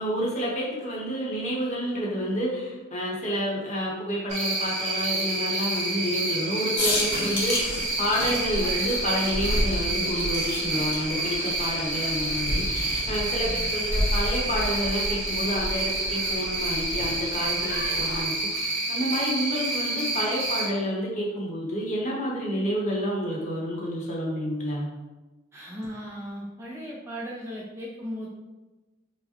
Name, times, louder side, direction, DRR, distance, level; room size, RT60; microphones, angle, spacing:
voice 1, 0.0-24.9, equal, 35° left, -4 dB, 0.8 m, -29 dB
Cricket, 4.3-20.7, right 2 dB, 35° right, 0.9 m, -29 dB
sound 1, 6.7-18.2, left 1 dB, 80° left, 1.1 m, -31 dB
voice 2, 13.4-13.8 25.5-28.3, equal, 15° right, -4 dB, 0.4 m, -37 dB
4.7 x 2.1 x 2.8 m, 1.1 s
head